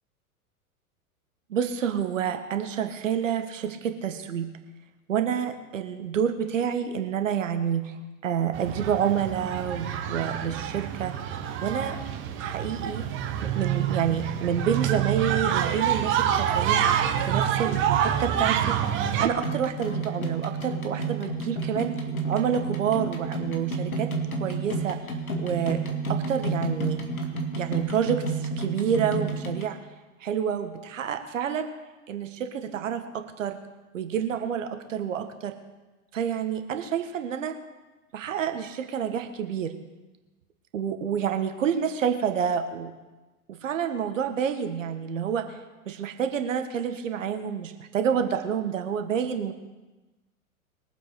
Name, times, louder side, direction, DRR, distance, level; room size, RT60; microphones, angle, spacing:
voice 1, 1.5-4.5 5.1-7.9 8.2-11.1 11.6-12.0 12.4-13.0 13.4-16.8 17.2-18.7 19.2-22.0 22.3-24.1 24.4-25.0 25.4-25.8 26.1-27.0 27.6-29.8 30.2-31.7 32.1-33.6 33.9-35.5 36.1-37.5 38.1-39.7 40.7-42.9 43.5-45.6 45.8-49.5, right 8 dB, 60° right, 7 dB, 1.6 m, -28 dB
sound 1, 8.5-19.3, right 9 dB, 25° right, 1.2 m, -27 dB
sound 2, 19.3-29.6, right 3 dB, 75° left, 2.2 m, -31 dB
22.5 x 7.8 x 4.9 m, 1.1 s
figure-of-eight pair, 100°, 43 cm